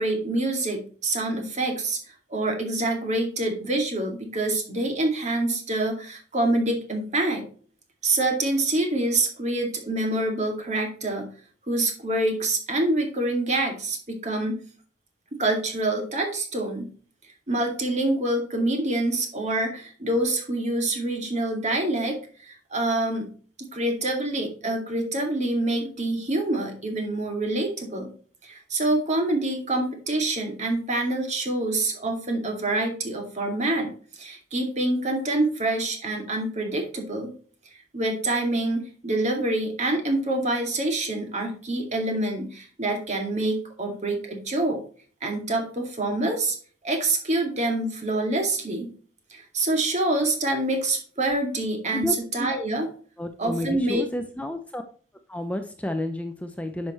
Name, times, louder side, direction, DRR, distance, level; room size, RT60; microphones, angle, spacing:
voice 1, 0.0-2.0 2.3-7.4 8.0-11.3 11.7-14.6 15.4-16.9 17.5-23.3 23.6-28.1 28.4-37.3 37.9-44.8 45.2-46.6 46.8-48.9 49.3-52.9 53.4-54.0, right 2 dB, 40° right, 3 dB, 2.3 m, -26 dB
voice 2, 53.2-54.8 55.3-56.9, left 1 dB, 10° left, 6 dB, 0.6 m, -30 dB
10.0 x 6.2 x 3.1 m, 0.42 s
head